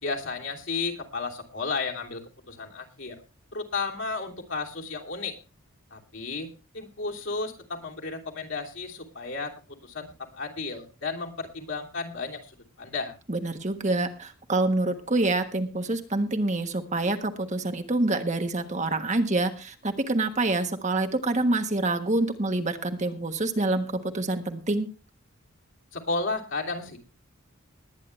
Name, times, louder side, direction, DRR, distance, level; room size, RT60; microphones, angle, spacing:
voice 1, 0.0-2.2 2.5-3.2 3.5-5.3 5.9-6.5 6.7-9.5 9.8-10.1 10.3-12.5 12.8-13.1 25.9-27.0, left 3 dB, 60° left, 0 dB, 3.1 m, -33 dB
voice 2, 13.3-24.9, right 2 dB, 35° right, 7 dB, 1.4 m, -26 dB
20.5 x 9.6 x 3.3 m, 0.33 s
head